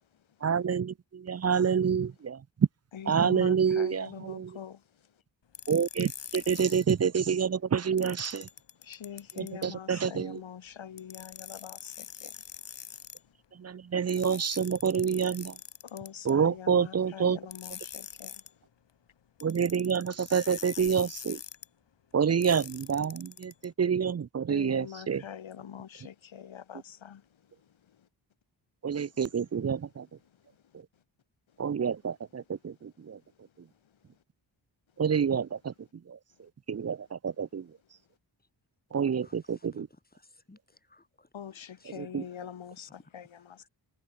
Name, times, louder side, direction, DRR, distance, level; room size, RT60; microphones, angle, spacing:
voice 1, 0.4-2.4 3.1-4.5 5.7-8.5 9.4-10.4 13.6-15.5 16.2-17.4 19.4-21.4 22.1-25.2 28.8-30.1 31.6-33.2 35.0-35.7 36.1-36.2 36.7-37.6 38.9-39.9 42.0-42.2, right 7 dB, 35° right, 0.6 m, -28 dB
voice 2, 2.9-4.8 8.8-12.3 15.8-18.4 24.5-27.2 41.3-43.7, left 9 dB, 90° left, 2.6 m, -44 dB
sound 1, 5.5-6.9 8.0-9.7 11.0-13.2 14.1-16.3 17.5-18.5 19.4-21.7 22.4-23.7, left 8 dB, 70° left, 1.8 m, -44 dB
voice 3, 39.2-42.4 42.8-43.1 43.4-43.5, left 2 dB, 20° left, 7.6 m, -60 dB
wide cardioid pair, 100°, 45 cm